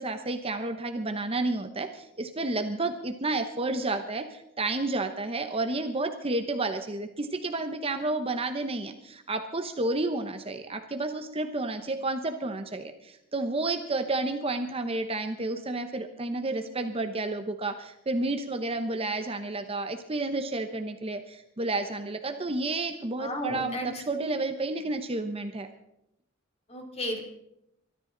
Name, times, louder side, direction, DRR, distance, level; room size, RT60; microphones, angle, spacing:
voice 1, 0.0-25.7, right 2 dB, 30° right, 7 dB, 1.0 m, -31 dB
voice 2, 23.2-23.9 24.2-24.4 26.7-27.2, left 1 dB, 30° left, 2 dB, 3.0 m, -33 dB
23.5 x 13.0 x 3.9 m, 0.82 s
head